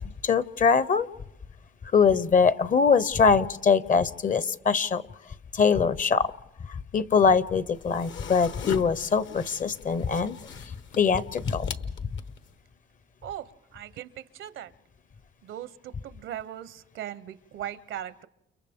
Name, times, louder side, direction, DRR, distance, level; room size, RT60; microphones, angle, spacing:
voice 1, 0.2-1.1 1.9-5.0 5.5-6.3 6.7-10.4 11.0-11.7, left 5 dB, 40° left, 17 dB, 0.7 m, -22 dB
sound 1, 7.7-12.5, left 6 dB, 70° left, 1.2 m, -40 dB
voice 2, 13.2-14.7 15.4-18.3, right 11 dB, 80° right, 16 dB, 0.8 m, -39 dB
29.5 x 29.5 x 3.6 m, 0.88 s
cardioid pair, 90°, 20 cm